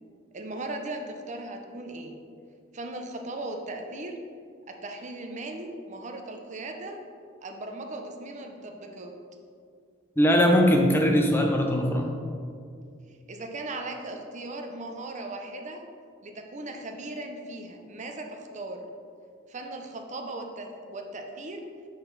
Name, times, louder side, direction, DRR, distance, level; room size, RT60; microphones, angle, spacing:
voice 1, 0.3-2.2 2.7-4.1 4.7-7.0 7.4-9.1 13.3-15.8 16.2-18.8 19.5-21.6, right 2 dB, 35° right, 3 dB, 0.6 m, -38 dB
voice 2, 10.2-12.1, equal, 10° left, 2 dB, 0.5 m, -21 dB
7.5 x 4.6 x 3.9 m, 2.3 s
head